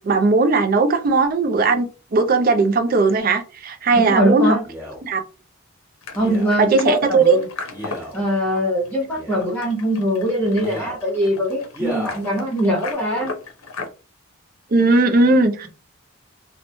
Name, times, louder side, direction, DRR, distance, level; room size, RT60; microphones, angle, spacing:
voice 1, 0.0-1.9 2.1-4.6 5.0-5.2 6.6-7.4 14.7-15.7, right 3 dB, 40° right, 0.4 m, -17 dB
voice 2, 3.9-4.6 6.1-7.5 8.1-13.4, equal, 10° left, 0.6 m, -21 dB
Male speech man speaking, 4.6-5.0 6.1-6.6 7.7-8.2 9.1-9.6 10.5-11.0 11.7-12.2 12.9-13.0, equal, 10° right, 1.0 m, -32 dB
sound 1, 6.0-13.9, left 4 dB, 80° left, 0.6 m, -37 dB
2.8 x 2.1 x 2.6 m
head